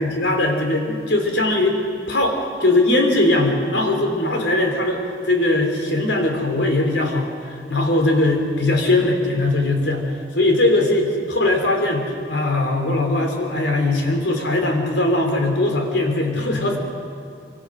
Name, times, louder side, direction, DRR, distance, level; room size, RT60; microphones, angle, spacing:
voice 1, 0.0-1.8 2.1-10.0 10.3-16.8, left 2 dB, 80° left, 2 dB, 3.9 m, -20 dB
26.5 x 25.5 x 6.6 m, 2.5 s
head